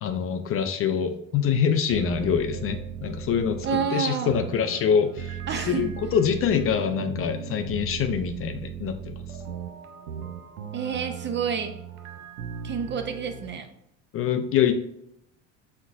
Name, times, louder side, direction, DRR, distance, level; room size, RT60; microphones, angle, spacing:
voice 1, 0.0-9.4 14.1-14.7, left 7 dB, 35° left, 7 dB, 0.4 m, -25 dB
sound 1, 1.9-13.5, right 8 dB, 80° right, 0.7 m, -37 dB
voice 2, 3.6-4.4 5.5-5.9 10.7-11.8 12.6-13.7, right 6 dB, 30° right, 7 dB, 0.4 m, -29 dB
4.3 x 3.9 x 2.4 m, 0.77 s
hypercardioid pair, 75°, 41 cm